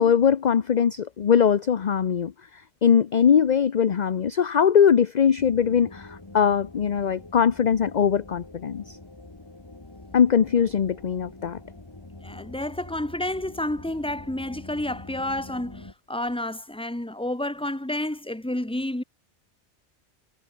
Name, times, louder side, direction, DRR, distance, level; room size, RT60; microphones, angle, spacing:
voice 1, 0.0-2.3 2.8-9.0 10.1-11.6, left 7 dB, 45° left, 0.7 m, -21 dB
sound 1, 5.4-15.9, left 2 dB, 20° left, 1.6 m, -45 dB
voice 2, 12.2-19.0, left 1 dB, 5° left, 1.5 m, -30 dB
omnidirectional pair, 1.2 m